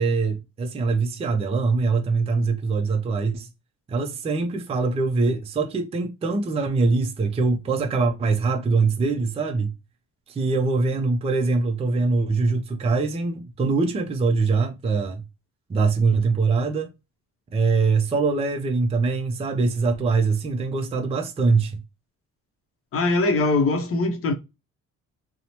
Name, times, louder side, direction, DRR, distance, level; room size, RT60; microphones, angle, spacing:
voice 1, 0.0-3.5 3.9-9.7 10.3-15.2 15.7-16.9 17.5-21.8, right 4 dB, 20° right, 0.4 m, -23 dB
voice 2, 22.9-24.3, left 3 dB, 50° left, 0.7 m, -21 dB
2.9 x 2.0 x 2.7 m
cardioid pair, 90°, 30 cm